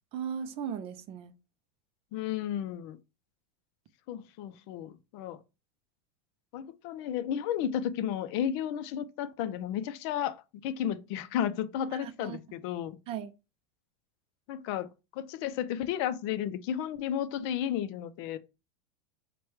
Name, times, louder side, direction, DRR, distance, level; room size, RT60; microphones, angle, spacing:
voice 1, 0.1-1.3 12.0-12.4 13.1-13.3, right 8 dB, 35° right, 0.4 m, -37 dB
voice 2, 2.1-3.0 4.1-5.4 6.5-10.3 10.6-13.0 14.5-18.4, left 10 dB, 55° left, 0.4 m, -33 dB
4.6 x 2.2 x 3.2 m
supercardioid pair, 145°, 16 cm